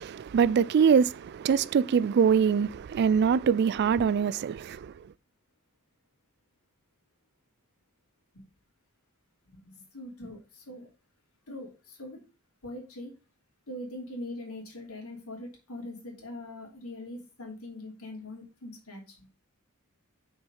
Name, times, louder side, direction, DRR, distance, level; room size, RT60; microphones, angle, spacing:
voice 1, 0.0-4.9, right 6 dB, 50° right, 0.3 m, -24 dB
voice 2, 9.5-10.9 11.5-12.2 12.6-13.1 13.7-19.3, left 1 dB, 80° left, 3.0 m, -42 dB
6.3 x 4.6 x 5.4 m
head